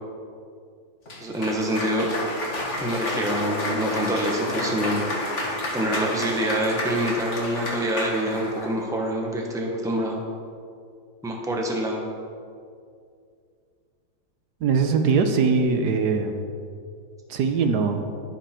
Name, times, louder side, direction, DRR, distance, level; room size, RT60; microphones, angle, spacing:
Cheering / Applause, 1.1-8.7, left 1 dB, 45° left, 1.9 m, -30 dB
voice 1, 1.2-2.1 2.8-5.0 5.7-10.2 11.2-12.1, right 1 dB, ahead, 0 dB, 1.0 m, -26 dB
voice 2, 14.6-16.3 17.3-18.0, right 5 dB, 75° right, 6 dB, 1.4 m, -21 dB
10.5 x 10.0 x 4.4 m, 2.3 s
omnidirectional pair, 1.8 m